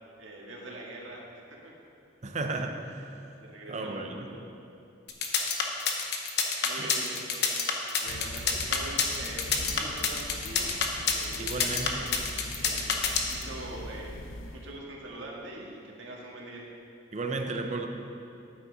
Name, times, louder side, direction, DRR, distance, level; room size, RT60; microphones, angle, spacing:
voice 1, 0.2-1.3 1.6-1.7 3.4-4.4 6.6-7.5 8.0-10.7 11.1-12.2 12.6-12.9 13.3-14.1 14.5-16.6, right 2 dB, 75° right, -2 dB, 1.7 m, -43 dB
voice 2, 2.2-2.9 3.7-4.3 6.8-6.9 11.4-12.1 17.1-17.9, right 3 dB, 35° right, 4 dB, 0.7 m, -33 dB
sound 1, 5.1-13.4, left 6 dB, 60° left, 0.9 m, -27 dB
sound 2, 8.0-14.7, left 1 dB, 85° left, 0.7 m, -42 dB
9.3 x 8.9 x 4.1 m, 2.6 s
head